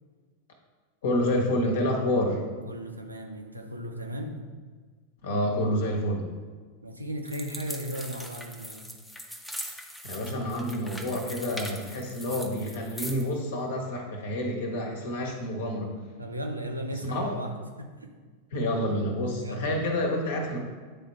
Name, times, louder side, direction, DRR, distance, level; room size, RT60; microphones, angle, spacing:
voice 1, 1.0-2.4 5.2-6.3 10.0-15.9 17.0-17.4 18.5-20.6, left 1 dB, 60° left, 1 dB, 1.2 m, -28 dB
voice 2, 2.6-4.4 6.8-8.9 16.2-18.1 19.4-19.7, equal, 85° right, 3 dB, 0.7 m, -36 dB
sound 1, 7.3-13.3, equal, 5° left, 0.6 m, -41 dB
8.9 x 3.6 x 4.2 m, 1.5 s
figure-of-eight pair, 90°, 0 cm